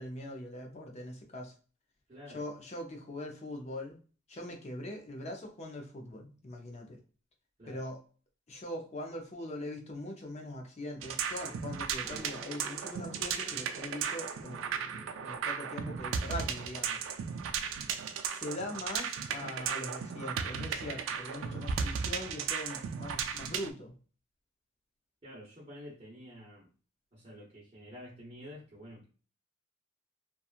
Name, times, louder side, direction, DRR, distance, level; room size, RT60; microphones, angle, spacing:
voice 1, 0.0-1.5 2.3-4.0 4.3-7.0 7.7-8.0 8.5-17.0 18.3-23.9, left 1 dB, 35° left, 1 dB, 0.5 m, -42 dB
voice 2, 2.1-2.4 7.6-7.9 25.2-26.7 27.1-29.0, equal, 30° right, -10 dB, 0.9 m, -49 dB
sound 1, 11.0-23.7, right 7 dB, 90° right, 0.3 m, -36 dB
sound 2, 12.0-23.9, left 1 dB, 10° right, 0.6 m, -58 dB
2.8 x 2.3 x 2.4 m, 0.38 s
head